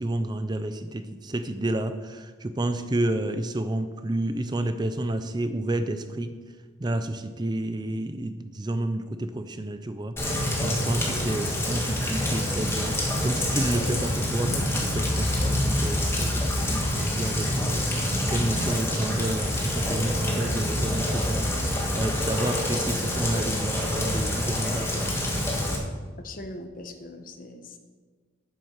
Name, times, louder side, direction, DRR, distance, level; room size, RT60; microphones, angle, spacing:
voice 1, 0.0-6.3 6.8-25.3, right 1 dB, 20° right, 9 dB, 0.5 m, -30 dB
Rain, 10.2-25.8, left 1 dB, 15° left, 1.7 m, -26 dB
voice 2, 26.2-27.8, left 1 dB, 45° left, 6 dB, 1.1 m, -40 dB
9.6 x 8.9 x 6.5 m, 1.5 s
head